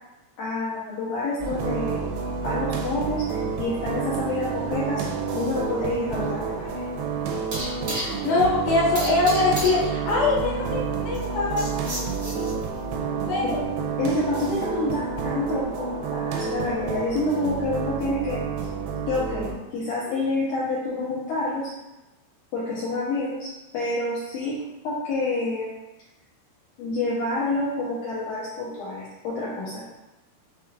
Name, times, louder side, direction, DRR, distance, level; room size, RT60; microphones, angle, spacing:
voice 1, 0.4-2.0 2.4-5.0 5.3-6.7 13.4-13.6 14.0-18.4 19.1-21.7 22.5-25.7 26.8-29.8, left 2 dB, 90° left, -8 dB, 1.8 m, -28 dB
sound 1, 1.4-19.6, right 5 dB, 90° right, 2.7 m, -29 dB
sound 2, 5.6-12.9, right 1 dB, 65° right, 1.0 m, -36 dB
voice 2, 8.2-12.6 13.3-13.6, left 3 dB, 75° left, -6 dB, 2.4 m, -23 dB
6.6 x 3.2 x 2.4 m, 1.0 s
omnidirectional pair, 4.7 m